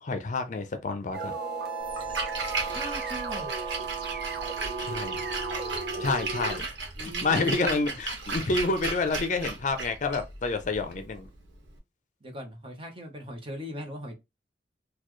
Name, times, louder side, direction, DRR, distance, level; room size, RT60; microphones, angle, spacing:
voice 1, 0.0-1.3 4.8-5.2 6.0-6.6 7.0-11.3, left 3 dB, 45° left, 0.5 m, -29 dB
sound 1, 1.1-6.6, right 4 dB, 60° right, 0.9 m, -34 dB
Splash splatter, 1.8-11.8, right 3 dB, 85° right, 1.1 m, -35 dB
voice 2, 2.7-3.5 7.0-8.0 12.2-14.2, equal, 30° right, 0.9 m, -39 dB
4.1 x 2.3 x 3.1 m
head